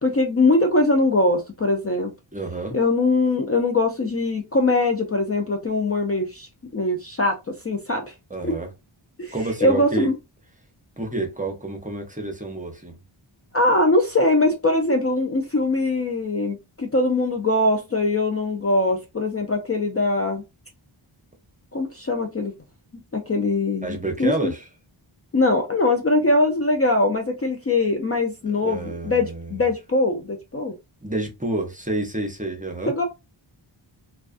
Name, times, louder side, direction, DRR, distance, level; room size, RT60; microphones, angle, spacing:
voice 1, 0.0-2.1 2.7-8.1 8.4-8.5 9.2-9.3 9.6-10.2 13.5-20.4 21.7-22.5 23.1-24.5 25.3-30.8 32.9-33.0, left 2 dB, 30° left, 0.4 m, -22 dB
voice 2, 2.3-2.8 8.3-8.7 9.3-10.1 11.0-12.9 23.8-24.6 28.4-29.6 31.0-32.9, right 2 dB, 15° right, 0.7 m, -29 dB
2.3 x 2.3 x 2.4 m
wide cardioid pair, 55°, 49 cm